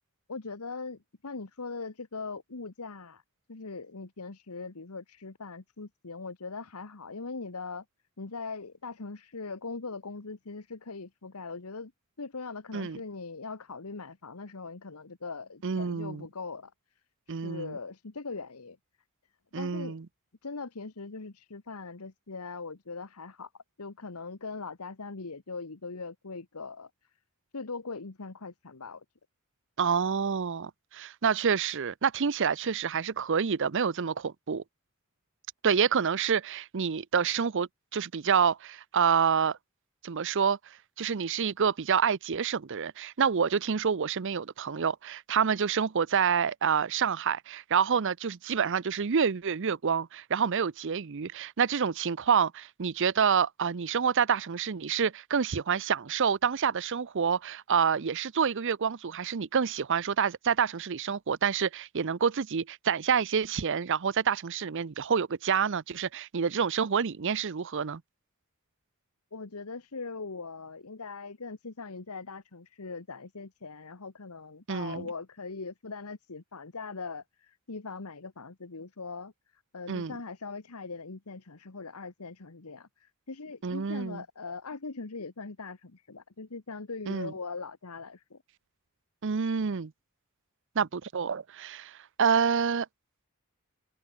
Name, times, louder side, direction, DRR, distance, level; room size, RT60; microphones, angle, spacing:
voice 1, 0.3-3.2 3.5-7.8 8.2-11.9 12.2-16.7 17.3-18.8 19.6-19.9 20.4-23.5 23.8-26.9 27.5-29.0 69.3-79.3 79.7-88.4, left 4 dB, 85° left, 1.3 m, -40 dB
voice 2, 15.6-16.3 17.3-17.8 19.5-20.1 29.8-34.6 35.6-39.6 40.0-40.6 41.0-68.0 74.7-75.1 79.9-80.2 83.6-84.2 87.1-87.3 89.2-89.9 90.8-92.9, right 6 dB, 55° right, 0.6 m, -28 dB
head